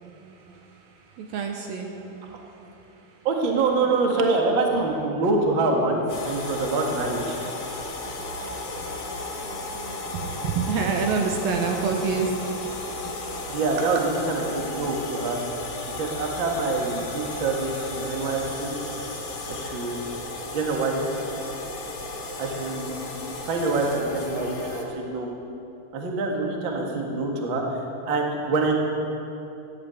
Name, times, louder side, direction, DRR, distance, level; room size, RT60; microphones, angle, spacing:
voice 1, 0.0-3.3 7.4-7.5 8.0-12.7 13.5-13.6, right 5 dB, 75° right, 3 dB, 2.5 m, -30 dB
voice 2, 3.2-7.4 13.5-15.4 15.8-18.8 19.5-20.0 20.4-21.0 22.4-22.9 23.4-25.3 25.9-27.6 28.0-28.7, right 3 dB, 45° right, 0 dB, 1.6 m, -25 dB
sound 1, 6.1-24.8, left 2 dB, 45° left, 2.3 m, -34 dB
15.5 x 8.9 x 8.7 m, 2.8 s
omnidirectional pair, 4.7 m